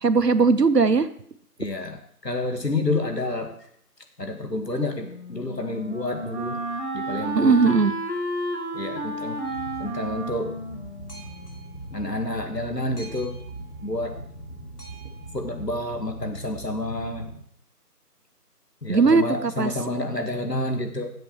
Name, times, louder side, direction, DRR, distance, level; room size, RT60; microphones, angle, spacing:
voice 1, 0.0-1.1 7.3-7.9 18.9-19.7, right 4 dB, 80° right, 14 dB, 0.9 m, -19 dB
voice 2, 1.6-3.5 4.2-6.6 6.9-7.8 8.7-9.4 9.8-10.5 11.9-13.4 13.8-14.2 15.3-17.3 18.8-21.1, left 2 dB, 90° left, 5 dB, 2.2 m, -29 dB
Wind instrument woodwind instrument, 5.0-11.8, right 1 dB, 45° left, 1.8 m, -32 dB
Boat Water vehicle, 9.4-17.4, right 2 dB, 70° left, 3.0 m, -40 dB
13.5 x 7.7 x 4.6 m, 0.65 s
figure-of-eight pair, 180°, 48 cm